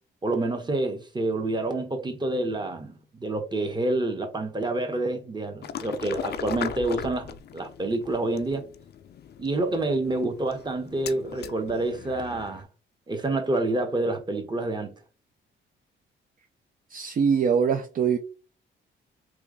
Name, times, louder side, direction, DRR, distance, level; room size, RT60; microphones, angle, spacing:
voice 1, 0.2-8.6 9.4-12.7 13.1-15.0, right 2 dB, 20° right, 1.0 m, -28 dB
sound 1, 5.6-12.6, left 8 dB, 50° left, 0.4 m, -39 dB
voice 2, 16.9-18.2, right 6 dB, 40° right, 0.5 m, -23 dB
3.1 x 2.3 x 3.8 m
cardioid pair, 80°, 21 cm